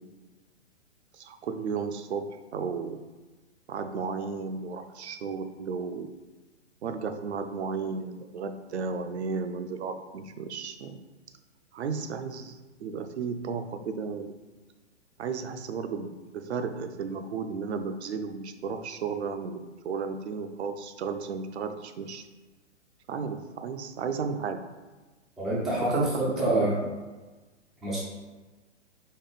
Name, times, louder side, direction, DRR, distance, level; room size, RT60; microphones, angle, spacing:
voice 1, 1.1-3.0 3.7-6.1 6.8-11.0 11.7-14.3 15.2-22.2 23.1-24.6 25.8-26.7, right 5 dB, 65° right, 8 dB, 0.6 m, -34 dB
voice 2, 25.4-26.7 27.8-28.0, right 1 dB, ahead, -9 dB, 0.4 m, -26 dB
4.3 x 3.0 x 4.0 m, 1.2 s
figure-of-eight pair, 120°, 36 cm